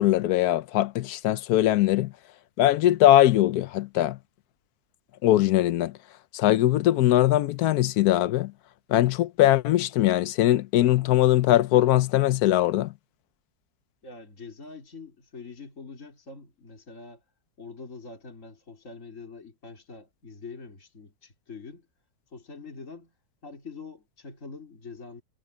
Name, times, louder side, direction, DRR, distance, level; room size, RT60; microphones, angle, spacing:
voice 1, 0.0-2.1 2.6-4.2 5.2-6.0 6.3-8.5 8.9-12.9, left 13 dB, 70° left, 1.0 m, -21 dB
voice 2, 14.0-17.2 17.6-21.9 22.3-23.1 23.4-25.2, left 4 dB, 40° left, 3.5 m, -44 dB
omnidirectional pair, 2.0 m